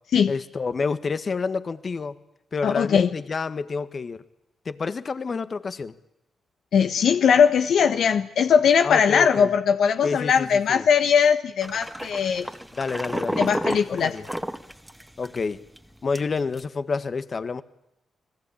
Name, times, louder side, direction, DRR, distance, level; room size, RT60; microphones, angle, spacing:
voice 1, 0.3-2.2 2.5-4.2 4.6-6.0 8.8-9.5 10.0-10.8 12.7-13.4 14.0-14.2 15.2-15.6 16.0-17.6, left 4 dB, 50° left, 13 dB, 1.6 m, -29 dB
voice 2, 2.6-3.1 6.7-12.5 13.4-14.1, left 7 dB, 70° left, 8 dB, 1.2 m, -20 dB
sound 1, 11.6-15.4 15.8-15.9 16.1-16.6, equal, 5° right, 2.0 m, -30 dB
29.5 x 20.5 x 8.7 m, 0.86 s
supercardioid pair, 45°, 0 cm